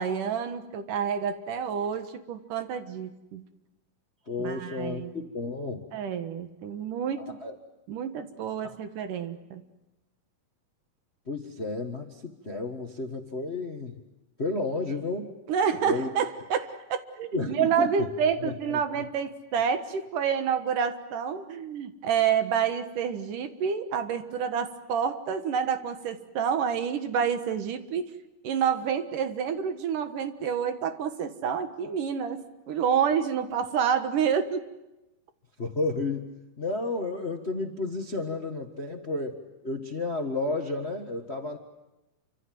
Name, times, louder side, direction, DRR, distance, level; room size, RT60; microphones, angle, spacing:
voice 1, 0.0-3.5 4.4-5.2 5.9-7.4 7.9-9.6 15.5-28.1 28.4-34.6, right 7 dB, 75° right, 8 dB, 3.0 m, -28 dB
voice 2, 4.3-5.8 7.2-7.5 8.6-8.8 11.3-14.0 14.4-15.3 15.8-16.1 17.3-18.1 18.4-19.0 35.6-36.3 36.6-39.4 39.6-41.6, left 3 dB, 35° left, 4 dB, 1.0 m, -32 dB
28.5 x 25.5 x 7.7 m, 0.96 s
omnidirectional pair, 3.8 m